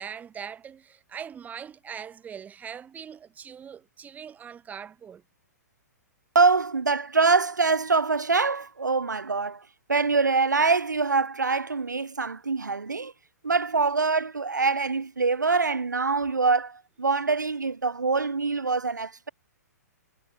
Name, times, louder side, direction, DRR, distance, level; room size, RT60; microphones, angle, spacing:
voice 1, 0.0-5.2, right 8 dB, 15° right, 4.5 m, -41 dB
voice 2, 6.3-13.1 13.4-19.3, right 4 dB, 90° right, 1.3 m, -24 dB
hypercardioid pair, 120°, 9 cm